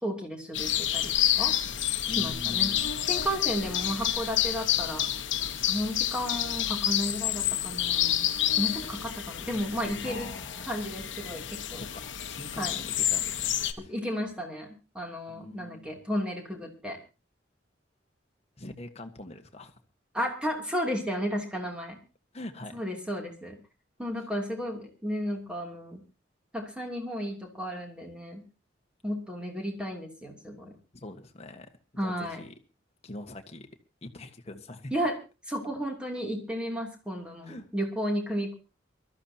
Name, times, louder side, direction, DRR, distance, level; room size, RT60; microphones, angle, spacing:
voice 1, 0.0-1.6 2.2-5.0 5.7-8.3 8.6-10.3 10.6-11.8 12.6-12.8 13.8-17.0 20.1-22.0 22.7-23.6 24.0-26.0 26.5-28.4 29.0-30.8 32.0-32.4 34.9-35.2 35.5-38.5, equal, 5° right, 1 dB, 3.0 m, -33 dB
sound 1, 0.5-13.7, left 11 dB, 75° left, 1.2 m, -29 dB
voice 2, 2.1-2.9 10.0-10.8 11.7-13.9 15.3-15.9 18.6-19.7 22.3-22.8 30.9-31.7 31.9-32.5 33.0-33.7 34.0-34.9 37.4-37.7, left 1 dB, 35° left, 6 dB, 1.5 m, -43 dB
23.5 x 13.5 x 2.9 m, 0.30 s
head